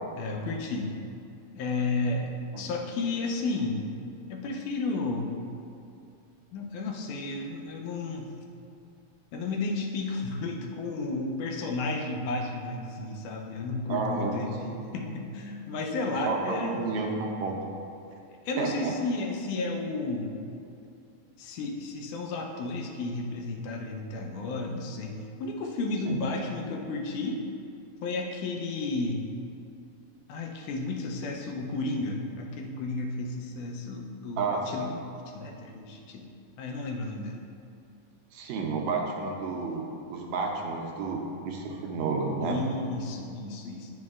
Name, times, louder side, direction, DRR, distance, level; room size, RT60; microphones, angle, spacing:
voice 1, 0.1-0.9 1.5-2.3 2.6-3.9 4.3-5.3 6.5-8.3 9.3-14.5 14.9-16.9 18.5-20.4 21.4-25.1 25.4-27.4 28.0-29.2 30.3-34.9 35.3-36.3 36.6-37.4 42.4-43.9, left 3 dB, 90° left, 1 dB, 2.2 m, -32 dB
voice 2, 13.9-14.7 16.3-17.6 18.6-18.9 26.1-26.2 34.4-34.9 38.3-42.6, right 4 dB, 80° right, 0 dB, 1.8 m, -31 dB
9.4 x 5.2 x 2.4 m, 2.6 s
omnidirectional pair, 3.4 m